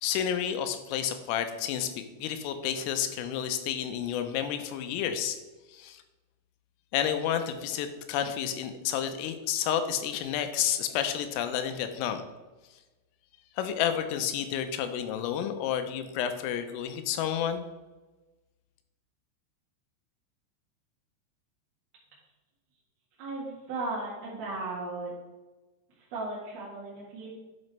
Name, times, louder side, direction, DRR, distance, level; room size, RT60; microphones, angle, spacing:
voice 1, 0.0-5.4 5.7-6.0 6.9-12.2 13.6-17.6, left 9 dB, 85° left, 8 dB, 3.2 m, -30 dB
voice 2, 23.2-25.1 26.0-27.4, right 2 dB, 60° right, -7 dB, 3.0 m, -36 dB
10.5 x 6.0 x 3.3 m, 1.2 s
omnidirectional pair, 6.0 m